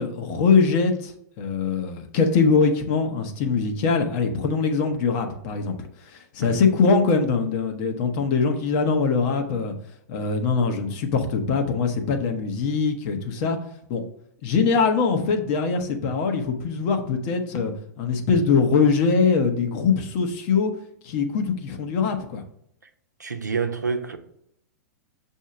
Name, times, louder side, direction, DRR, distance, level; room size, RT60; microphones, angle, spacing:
voice 1, 0.0-9.7 10.1-13.6 13.9-14.0 14.4-17.7 18.0-20.7 21.0-22.4, left 5 dB, 40° left, 1.0 m, -22 dB
voice 2, 23.2-24.2, right 5 dB, 80° right, 0.7 m, -27 dB
7.2 x 2.8 x 5.7 m
figure-of-eight pair, 100°, 9 cm